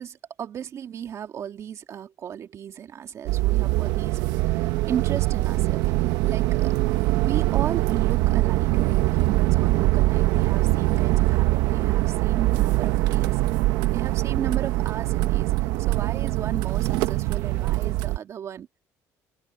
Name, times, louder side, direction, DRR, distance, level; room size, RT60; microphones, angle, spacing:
voice 1, 0.0-6.7 7.1-13.4 13.9-18.7, right 9 dB, 45° right, 2.3 m, -35 dB
sound 1, 3.3-18.2, right 17 dB, 85° right, 1.2 m, -23 dB
cardioid pair, 115°, 7 cm